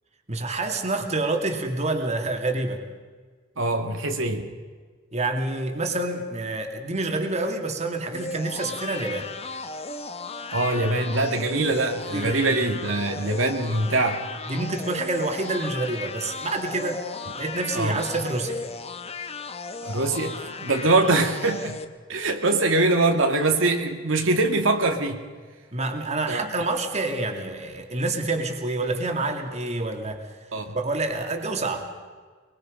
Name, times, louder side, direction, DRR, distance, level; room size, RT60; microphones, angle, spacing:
voice 1, 0.3-2.8 5.1-9.3 12.1-12.6 14.5-17.0 17.3-18.6 25.7-30.2 30.7-31.9, right 2 dB, 35° right, 2.5 m, -27 dB
voice 2, 3.6-4.5 10.5-14.3 17.7-18.0 19.8-21.8 22.1-25.2 26.3-26.4 30.5-30.8, right 2 dB, 75° right, 1.9 m, -23 dB
sound 1, 8.1-21.8, left 3 dB, 30° left, 1.2 m, -36 dB
23.5 x 23.0 x 5.3 m
head